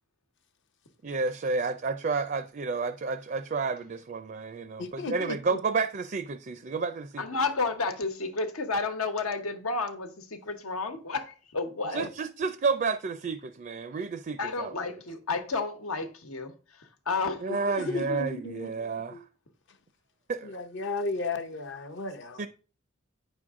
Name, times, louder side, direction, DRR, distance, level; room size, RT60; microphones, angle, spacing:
voice 1, 1.0-7.2 11.9-14.7 17.4-19.2 20.3-20.6 22.4-22.5, right 4 dB, 40° right, 0.4 m, -31 dB
voice 2, 4.8-5.6 12.0-12.1 17.5-19.2 20.4-22.4, left 3 dB, 55° left, 0.7 m, -35 dB
voice 3, 7.2-12.0 14.4-17.9, left 4 dB, 85° left, 1.2 m, -32 dB
9.0 x 6.2 x 3.6 m
head